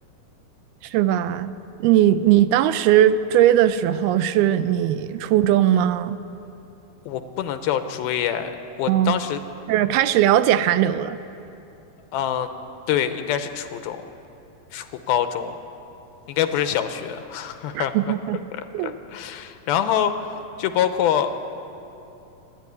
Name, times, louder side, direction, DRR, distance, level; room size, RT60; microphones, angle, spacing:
voice 1, 0.8-1.5 1.8-6.2 8.9-9.2 9.7-11.2 17.7-18.4 18.7-18.9, right 11 dB, 80° right, 13 dB, 2.5 m, -19 dB
voice 2, 7.1-8.5 8.8-9.4 12.1-12.5 12.9-14.0 14.7-15.5 16.3-17.9 18.5-20.1 20.6-21.3, left 10 dB, 80° left, 9 dB, 2.6 m, -25 dB
27.0 x 11.5 x 9.6 m, 2.8 s
omnidirectional pair, 4.6 m